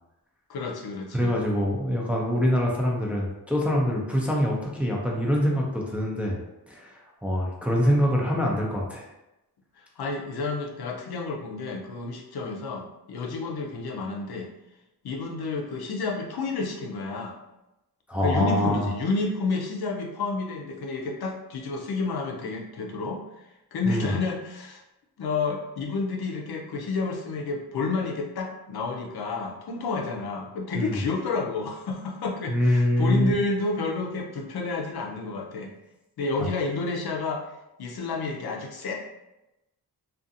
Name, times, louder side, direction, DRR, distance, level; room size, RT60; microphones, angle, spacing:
voice 1, 0.5-1.3 10.0-14.5 15.0-17.4 18.2-23.2 23.7-24.8 25.2-35.7 36.2-37.4 37.8-38.9, left 3 dB, 70° left, 0 dB, 0.6 m, -30 dB
voice 2, 1.1-6.4 6.7-9.1 18.1-18.9 23.9-24.1 30.7-31.0 32.5-33.3, equal, 5° right, -3 dB, 0.4 m, -24 dB
2.5 x 2.4 x 2.6 m, 0.94 s
wide cardioid pair, 100°, 39 cm